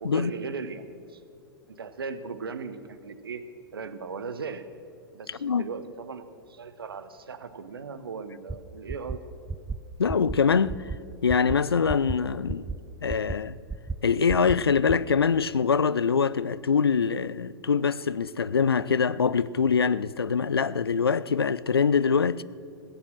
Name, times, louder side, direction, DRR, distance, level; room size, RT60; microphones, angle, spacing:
voice 1, 0.0-1.2 1.7-3.4 3.7-4.7 5.1-9.2, right 5 dB, 70° right, 1.0 m, -37 dB
voice 2, 5.3-5.7 10.0-10.9 11.2-12.7 13.0-13.6 14.0-22.4, left 6 dB, 80° left, 0.4 m, -24 dB
sound 1, 8.5-8.6 8.9-9.2 9.5-9.8 10.1-10.4 10.7-11.0 11.3-11.6 11.9-12.1 12.5-12.8 13.1-13.4 13.7-14.0 14.3-14.6 14.9-15.0, right 4 dB, 10° right, 0.5 m, -32 dB
16.5 x 9.0 x 7.6 m
figure-of-eight pair, 100°, 13 cm